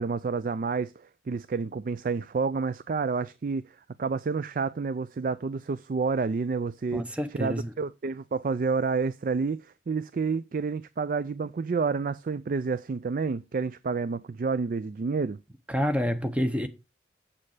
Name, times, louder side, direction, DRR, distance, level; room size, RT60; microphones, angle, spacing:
voice 1, 0.0-7.0 7.3-15.4, right 4 dB, 50° right, 0.3 m, -29 dB
voice 2, 6.9-7.7 15.7-16.7, equal, 5° right, 0.8 m, -28 dB
7.4 x 6.6 x 4.8 m
head